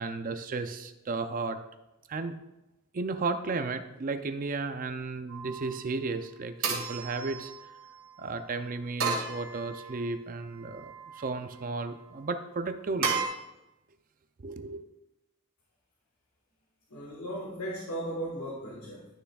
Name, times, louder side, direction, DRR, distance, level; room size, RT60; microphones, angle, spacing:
voice 1, 0.0-1.6 2.1-2.4 2.9-7.7 8.2-13.2 14.4-14.8, right 3 dB, 40° right, 9 dB, 0.4 m, -34 dB
sound 1, 5.3-5.8 6.6-8.0 9.0-10.1 10.6-11.3 13.0-13.3, right 5 dB, 65° right, 1.8 m, -33 dB
voice 2, 16.9-19.1, right 1 dB, 85° left, -3 dB, 1.5 m, -36 dB
11.5 x 6.8 x 2.3 m, 0.96 s
head